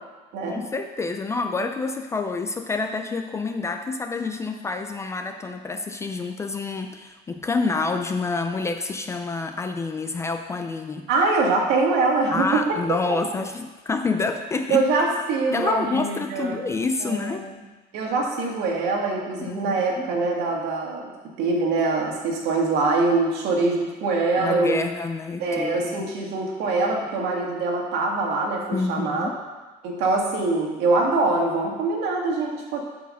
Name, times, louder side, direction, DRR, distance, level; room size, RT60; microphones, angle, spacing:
voice 1, 0.5-11.1 12.3-14.8 15.5-17.4 19.4-20.1 24.4-26.1 28.7-29.3, left 3 dB, 15° left, 6 dB, 0.3 m, -28 dB
voice 2, 11.1-12.6 12.9-13.0 14.7-16.6 17.0-17.5 17.9-21.1 21.4-24.8 25.4-29.3 29.8-32.8, right 3 dB, 75° right, 0 dB, 1.8 m, -23 dB
8.1 x 4.7 x 6.4 m, 1.2 s
cardioid pair, 175°, 18 cm